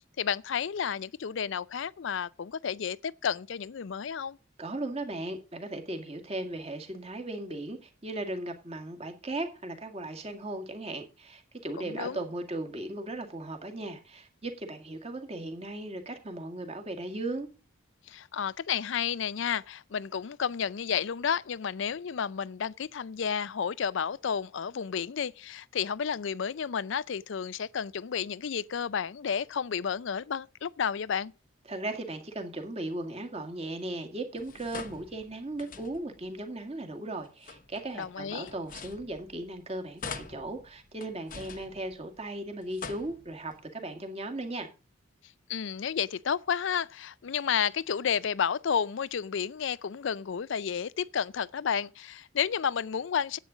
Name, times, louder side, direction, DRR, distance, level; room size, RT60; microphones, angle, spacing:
voice 1, 0.2-4.4 11.8-12.2 18.1-31.3 37.9-38.5 45.5-53.4, left 7 dB, 65° left, 0.4 m, -31 dB
voice 2, 4.6-17.5 31.7-44.7, right 2 dB, 30° right, 1.9 m, -37 dB
sound 1, 34.4-36.3 37.2-39.6 40.0-42.3 42.6-43.6, left 5 dB, 40° left, 1.0 m, -45 dB
10.0 x 8.5 x 5.1 m
head